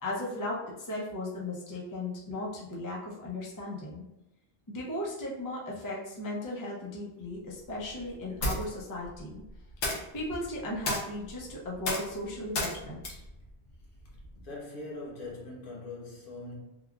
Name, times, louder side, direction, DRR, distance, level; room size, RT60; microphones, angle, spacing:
voice 1, 0.0-4.0 4.7-9.4 10.1-13.2, left 1 dB, 25° left, -4 dB, 0.5 m, -36 dB
sound 1, 7.3-14.5, left 1 dB, 85° left, 1.1 m, -37 dB
voice 2, 14.3-16.5, left 2 dB, 55° left, -4 dB, 1.0 m, -41 dB
3.4 x 2.3 x 2.3 m, 0.93 s
omnidirectional pair, 1.1 m